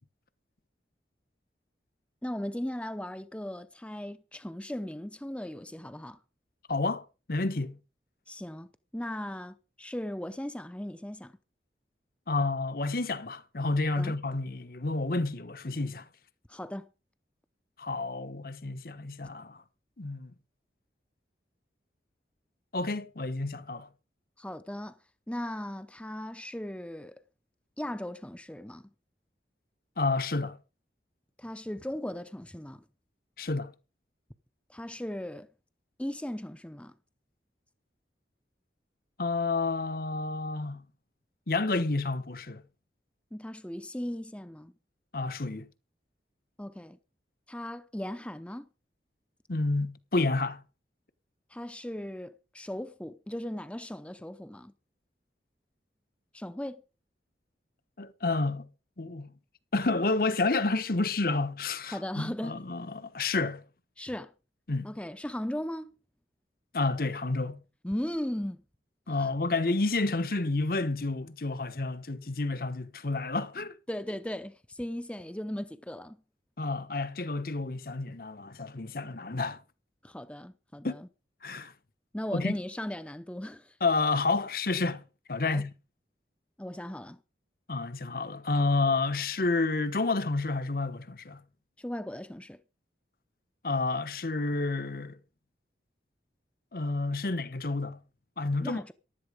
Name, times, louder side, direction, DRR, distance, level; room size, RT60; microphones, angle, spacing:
voice 1, 2.2-6.2 8.3-11.3 14.0-14.1 16.5-16.9 24.4-25.0 25.3-27.2 27.8-28.8 31.4-32.8 34.7-35.5 36.0-36.9 43.3-44.7 46.6-47.0 47.5-48.7 51.5-54.7 56.3-56.8 61.9-62.6 64.0-64.3 64.8-65.9 67.8-68.6 69.1-69.3 73.9-76.2 80.0-81.1 82.1-83.8 85.4-85.6 86.6-87.2 91.8-92.6 98.6-98.9, left 1 dB, 5° left, 0.6 m, -37 dB
voice 2, 6.7-7.0 7.3-7.8 12.3-16.1 17.8-19.6 20.0-20.3 22.7-23.9 30.0-30.6 33.4-33.7 39.2-40.8 41.5-42.6 45.1-45.7 49.5-50.6 58.0-58.7 59.0-59.3 59.7-63.6 64.7-64.9 66.7-67.6 69.1-73.8 76.6-79.6 80.8-81.0 81.4-81.7 82.3-82.5 83.8-85.0 85.3-85.7 87.7-91.4 93.6-95.2 96.7-98.0 98.4-98.9, left 3 dB, 50° left, 1.1 m, -30 dB
15.0 x 11.5 x 5.0 m
head